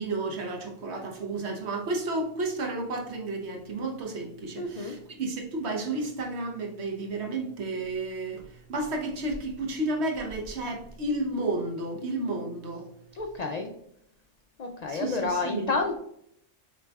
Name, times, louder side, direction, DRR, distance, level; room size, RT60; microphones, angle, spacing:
voice 1, 0.0-12.9 14.9-15.7, right 2 dB, 60° right, 2 dB, 1.1 m, -32 dB
voice 2, 4.6-4.9 13.1-13.7 14.6-16.0, left 3 dB, 65° left, 3 dB, 0.4 m, -30 dB
6.1 x 3.4 x 2.3 m, 0.71 s
omnidirectional pair, 1.3 m